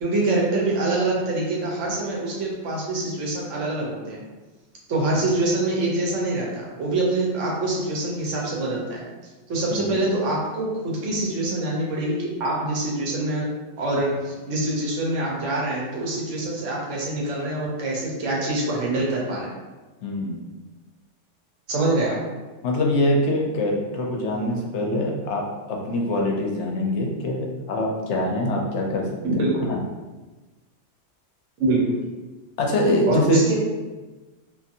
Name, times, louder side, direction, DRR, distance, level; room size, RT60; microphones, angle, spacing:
voice 1, 0.0-4.2 4.9-9.0 9.5-13.5 13.8-19.5 21.7-22.2 29.2-29.7 31.6-31.9 33.1-33.6, right 2 dB, 80° right, -3 dB, 1.0 m, -25 dB
voice 2, 9.7-10.0 20.0-20.4 22.6-25.4 25.7-29.0 29.4-29.8 32.6-33.4, left 1 dB, 70° left, 0 dB, 0.8 m, -24 dB
2.6 x 2.5 x 2.6 m, 1.2 s
omnidirectional pair, 1.3 m